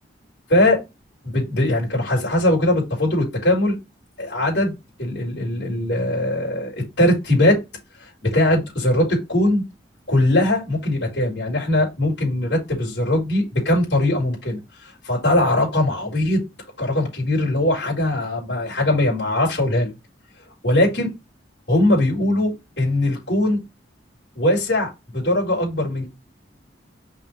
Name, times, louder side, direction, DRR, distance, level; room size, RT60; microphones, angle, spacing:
voice 1, 1.2-3.8 4.2-7.6 8.0-9.6 10.1-16.4 16.8-19.9 20.6-21.1 21.7-23.6 24.4-26.1, left 1 dB, 70° left, -4 dB, 4.3 m, -20 dB
5.7 x 5.6 x 3.3 m, 0.23 s
head